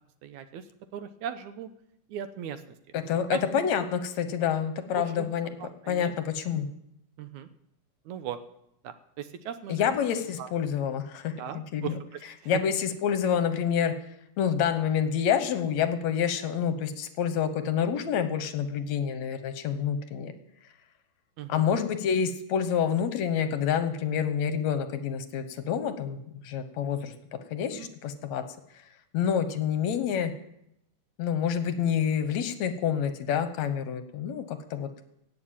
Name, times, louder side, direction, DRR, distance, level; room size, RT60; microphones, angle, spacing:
voice 1, 0.2-0.7 0.9-1.7 2.1-2.6 3.3-3.4 5.0-5.3 5.6-6.1 7.2-7.5 8.1-8.4 8.8-10.0 10.4-10.5 11.4-12.6 21.4-21.7 27.7-27.9, right 9 dB, 75° right, 11 dB, 2.1 m, -38 dB
voice 2, 2.9-5.5 5.9-6.7 9.7-11.3 11.7-11.9 12.5-13.9 14.4-20.3 21.5-26.2 26.4-27.1 27.5-28.4 29.1-30.3 31.2-35.0, left 8 dB, 70° left, 10 dB, 2.1 m, -28 dB
16.5 x 6.9 x 8.9 m, 0.79 s
omnidirectional pair, 3.6 m